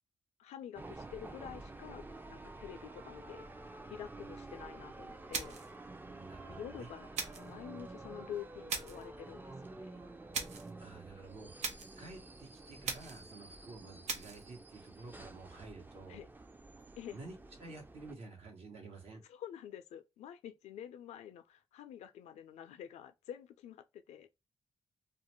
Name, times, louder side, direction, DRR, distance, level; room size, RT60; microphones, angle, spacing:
voice 1, 0.4-3.5 3.9-5.6 6.5-10.0 16.1-16.3 17.0-17.2 19.3-24.3, left 9 dB, 85° left, 0.4 m, -48 dB
sound 1, 0.7-18.1, right 2 dB, 15° right, 0.4 m, -50 dB
sound 2, 5.3-5.8 7.1-7.5 8.7-9.1 10.3-10.7 11.6-12.0 12.8-13.3 14.1-14.4, right 5 dB, 85° right, 0.5 m, -39 dB
voice 2, 6.1-6.9 10.8-11.5 12.0-16.2 17.1-19.2, right 3 dB, 65° right, 1.0 m, -51 dB
2.4 x 2.1 x 3.0 m
supercardioid pair, 55°, 11 cm